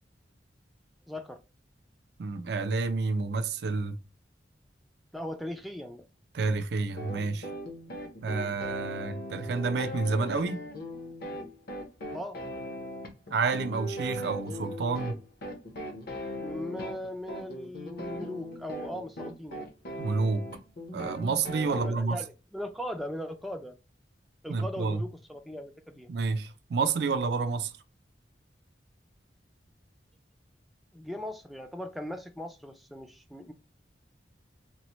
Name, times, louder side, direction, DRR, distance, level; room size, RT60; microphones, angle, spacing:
voice 1, 1.1-1.4 5.1-6.1 12.1-12.4 16.4-19.7 21.7-23.8 24.4-26.1 30.9-33.5, left 1 dB, ahead, 0.3 m, -39 dB
voice 2, 2.2-4.0 6.3-7.5 8.2-10.6 13.3-15.2 20.0-20.5 20.9-22.2 24.5-25.0 26.1-27.7, right 4 dB, 65° right, 0.4 m, -29 dB
sound 1, 7.0-21.9, equal, 60° left, 0.8 m, -39 dB
3.9 x 2.0 x 2.9 m
head